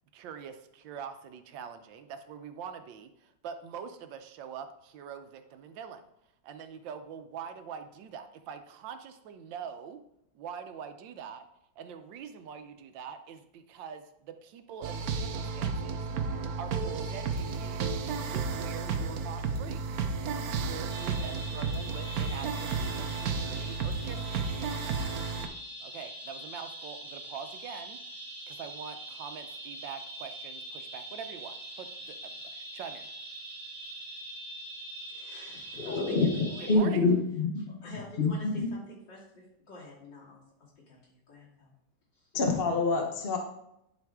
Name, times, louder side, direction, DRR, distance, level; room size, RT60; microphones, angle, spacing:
voice 1, 0.1-6.0 6.4-10.0 10.3-11.4 11.8-16.1 16.6-18.0 18.3-19.9 20.6-24.4 25.8-28.0 28.5-33.1 36.6-37.1, right 7 dB, 80° right, 9 dB, 1.4 m, -44 dB
sound 1, 14.8-25.5, right 5 dB, 65° right, 1.0 m, -32 dB
sound 2, 20.9-36.8, right 1 dB, 15° left, 1.9 m, -43 dB
voice 2, 35.1-36.9 37.8-41.7 42.1-42.3, left 1 dB, 70° left, -6 dB, 3.4 m, -47 dB
voice 3, 35.8-38.7 42.3-43.4, left 3 dB, 45° left, 3 dB, 0.8 m, -27 dB
10.5 x 4.8 x 3.6 m, 0.80 s
omnidirectional pair, 2.0 m